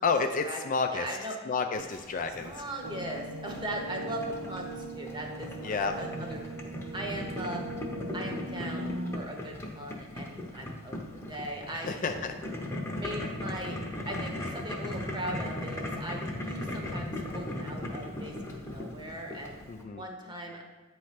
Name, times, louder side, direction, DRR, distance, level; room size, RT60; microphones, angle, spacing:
voice 1, 0.0-1.1 1.5-2.6 5.6-6.0 11.7-12.4 19.7-20.0, left 4 dB, 40° left, 6 dB, 0.3 m, -30 dB
voice 2, 0.9-1.4 2.4-6.4 6.9-7.6 8.1-12.0 13.0-13.8 14.0-19.6 20.0-20.6, right 1 dB, 20° right, 1 dB, 1.0 m, -39 dB
Boiling, 1.7-19.8, left 1 dB, 15° left, 0.8 m, -38 dB
sound 1, 2.8-9.2, right 1 dB, 60° right, 0.6 m, -39 dB
8.9 x 3.1 x 5.8 m, 1.3 s
head